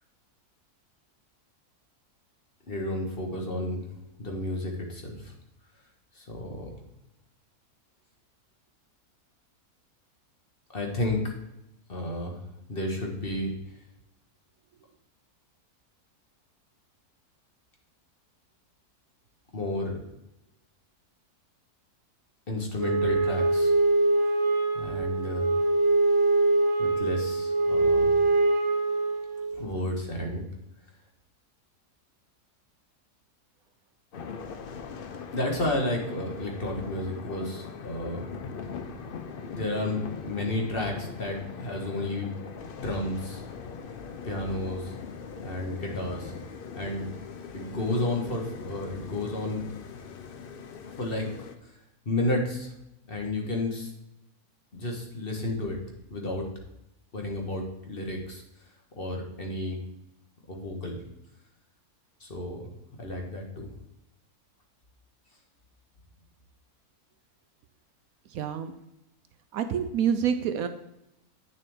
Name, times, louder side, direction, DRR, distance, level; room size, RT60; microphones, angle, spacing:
voice 1, 2.7-3.9 4.2-5.3 6.1-6.7 10.7-11.3 11.9-12.4 12.7-13.5 19.5-20.0 22.5-23.7 24.7-25.5 26.8-28.2 29.5-30.5 35.3-38.2 39.5-42.3 42.8-43.4 44.2-44.9 45.4-46.3 46.7-47.1 47.5-49.7 50.9-51.3 51.6-51.7 52.0-52.7 53.1-53.9 54.7-55.8 56.1-56.4 57.1-58.4 59.0-59.8 60.5-61.0 62.2-63.7, left 1 dB, 40° left, 1 dB, 1.5 m, -32 dB
Wind instrument woodwind instrument, 22.8-29.6, right 2 dB, 30° right, 0.5 m, -24 dB
sound 1, 34.1-51.5, left 5 dB, 60° left, 0.6 m, -41 dB
voice 2, 68.3-68.7 69.5-70.7, right 8 dB, 70° right, 9 dB, 1.0 m, -27 dB
9.0 x 6.7 x 3.6 m, 0.86 s
omnidirectional pair, 1.7 m